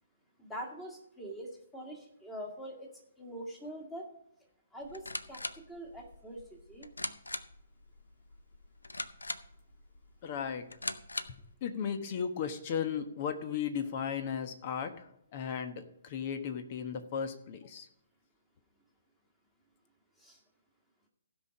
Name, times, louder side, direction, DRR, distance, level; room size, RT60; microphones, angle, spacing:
voice 1, 0.4-2.9 3.2-4.1 4.7-6.9 20.2-20.4, right 1 dB, 5° left, 0 dB, 2.0 m, -44 dB
sound 1, 4.8-11.5, left 2 dB, 75° left, 0.7 m, -42 dB
voice 2, 10.2-10.7 11.6-17.9, left 7 dB, 35° left, 8 dB, 1.1 m, -36 dB
16.0 x 5.4 x 4.9 m, 0.77 s
figure-of-eight pair, 130°, 0 cm